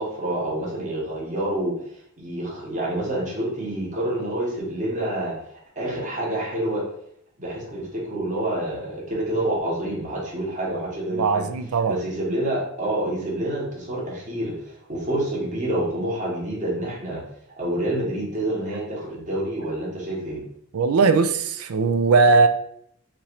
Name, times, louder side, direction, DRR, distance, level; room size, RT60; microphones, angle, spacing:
voice 1, 0.0-1.7 2.2-5.4 5.8-6.8 7.4-11.5 11.9-14.5 14.9-17.2 17.6-20.4, right 1 dB, 35° right, -3 dB, 1.2 m, -27 dB
voice 2, 11.1-12.0 20.7-22.5, right 4 dB, 80° right, 9 dB, 0.4 m, -19 dB
5.5 x 2.5 x 3.2 m, 0.70 s
head